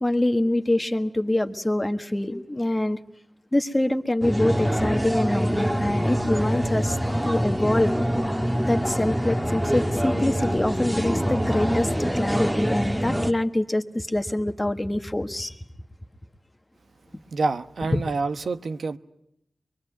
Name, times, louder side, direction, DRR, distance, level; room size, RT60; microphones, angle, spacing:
voice 1, 0.0-3.0 3.5-7.0 7.2-7.9 8.6-15.5 17.9-18.0, left 1 dB, 20° left, 1.5 m, -25 dB
sound 1, 4.2-13.3, equal, 10° right, 1.6 m, -25 dB
voice 2, 17.3-19.0, right 3 dB, 80° right, 1.0 m, -27 dB
24.0 x 23.0 x 9.3 m
wide cardioid pair, 70°, 0 cm